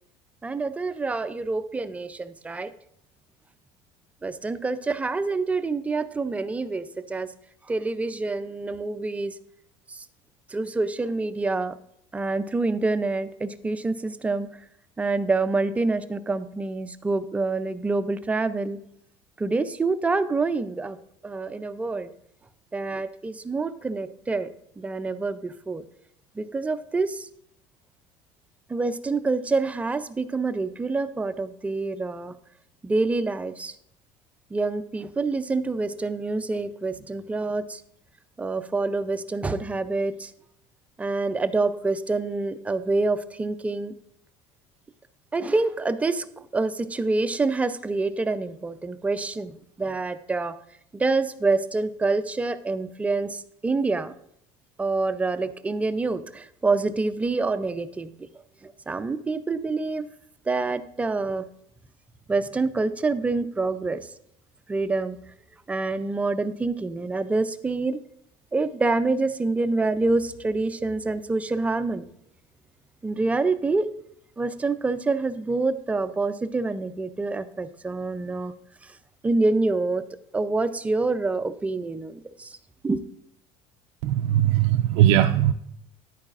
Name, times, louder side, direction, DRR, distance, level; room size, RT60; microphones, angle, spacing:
voice 1, 0.4-2.7 4.2-7.3 7.7-9.4 9.9-10.0 10.5-11.8 12.1-14.5 15.0-18.8 19.4-21.0 21.2-22.1 22.7-24.5 24.8-25.9 26.4-27.3 28.7-32.4 32.8-33.7 34.5-37.8 38.4-40.3 41.0-43.9 45.3-50.6 50.9-54.1 54.8-58.1 58.6-60.1 60.5-61.5 62.3-64.0 64.7-65.2 65.7-68.0 68.5-72.0 73.0-73.9 74.4-78.5 79.2-80.0 80.3-82.6 82.8-83.0, right 3 dB, 10° right, 12 dB, 0.4 m, -26 dB
voice 2, 84.0-85.5, right 12 dB, 80° right, 5 dB, 0.4 m, -19 dB
10.5 x 8.7 x 2.4 m, 0.72 s
cardioid pair, 140°, 12 cm